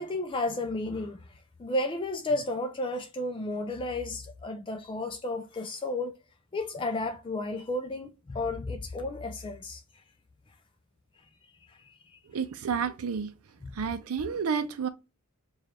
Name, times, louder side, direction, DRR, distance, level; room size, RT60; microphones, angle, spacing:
voice 1, 0.0-6.1 6.5-9.8 11.7-12.2 13.6-13.8, left 2 dB, 25° left, 0.3 m, -33 dB
voice 2, 12.3-13.3 13.8-14.9, right 6 dB, 80° right, 0.5 m, -30 dB
4.8 x 2.3 x 2.9 m
head